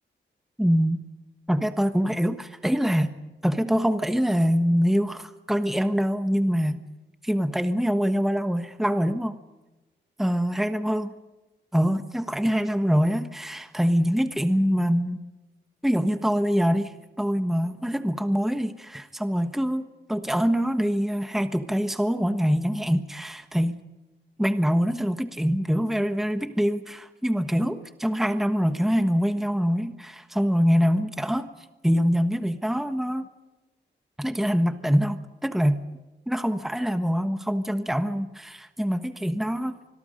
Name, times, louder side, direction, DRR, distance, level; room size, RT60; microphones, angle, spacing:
voice 1, 0.6-1.0 1.5-3.1 3.4-6.8 7.2-9.4 10.2-11.1 11.7-15.2 15.8-23.7 24.4-31.5 31.8-33.3 34.2-35.8 36.3-39.8, equal, ahead, 9 dB, 1.3 m, -24 dB
25.5 x 21.5 x 5.3 m, 1.1 s
cardioid pair, 80°, 20 cm